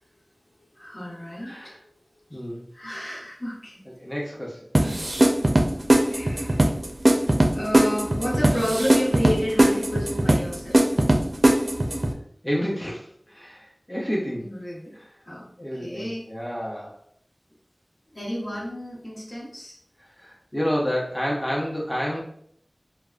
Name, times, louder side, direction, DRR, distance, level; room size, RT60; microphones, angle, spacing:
voice 1, 0.5-2.4 2.7-3.8 6.1-6.8 7.5-10.8 14.4-15.0 15.2-16.2 18.1-19.8, equal, 70° left, -6 dB, 1.0 m, -31 dB
voice 2, 1.4-1.8 2.3-2.6 4.0-4.7 12.4-14.5 15.6-17.0 20.2-22.2, equal, 15° left, -3 dB, 0.6 m, -29 dB
sound 1, 4.7-12.1, right 1 dB, 60° right, 0.4 m, -20 dB
3.4 x 2.1 x 2.4 m, 0.64 s
wide cardioid pair, 45°, 0 cm